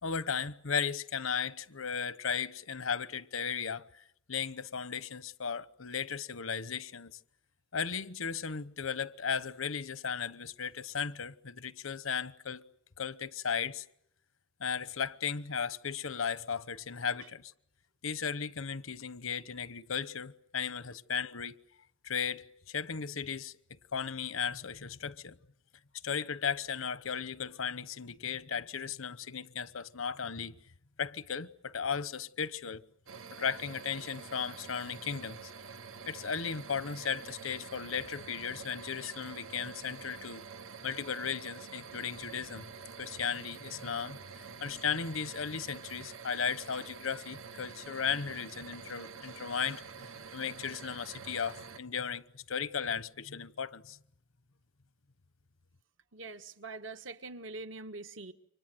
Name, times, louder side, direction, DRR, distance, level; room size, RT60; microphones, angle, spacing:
voice 1, 0.0-7.2 7.7-12.6 13.0-13.9 14.6-17.5 18.0-21.6 22.0-23.5 23.9-25.4 26.0-30.6 31.0-32.8 33.3-35.5 36.1-40.4 40.8-42.6 43.0-44.2 44.6-54.0, left 6 dB, 85° left, 1.0 m, -36 dB
sound 1, 33.1-51.8, right 6 dB, 85° right, 1.4 m, -47 dB
voice 2, 56.1-58.3, right 3 dB, 65° right, 1.6 m, -43 dB
29.5 x 25.0 x 7.9 m
head